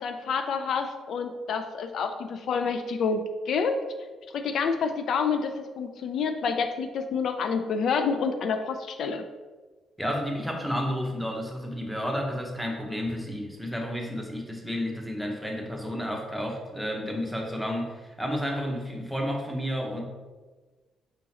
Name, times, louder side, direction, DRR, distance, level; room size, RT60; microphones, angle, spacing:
voice 1, 0.0-3.8 4.3-9.2, left 5 dB, 65° left, 7 dB, 0.3 m, -28 dB
voice 2, 10.0-20.0, equal, ahead, 0 dB, 0.9 m, -31 dB
5.0 x 3.7 x 2.9 m, 1.3 s
cardioid pair, 90°, 0 cm